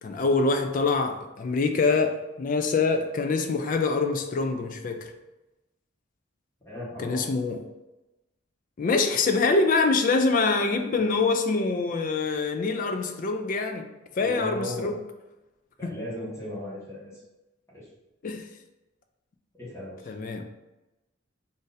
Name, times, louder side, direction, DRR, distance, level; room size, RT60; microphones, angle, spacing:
voice 1, 0.0-5.1 7.0-7.6 8.8-13.9 14.2-15.0 15.8-16.0 18.2-18.5 20.1-20.5, left 3 dB, 40° left, 6 dB, 0.3 m, -25 dB
voice 2, 6.6-7.2 14.2-14.9 15.8-17.1 17.7-17.8 19.6-20.1, left 1 dB, 15° left, -8 dB, 1.0 m, -36 dB
2.6 x 2.6 x 3.9 m, 1.0 s
head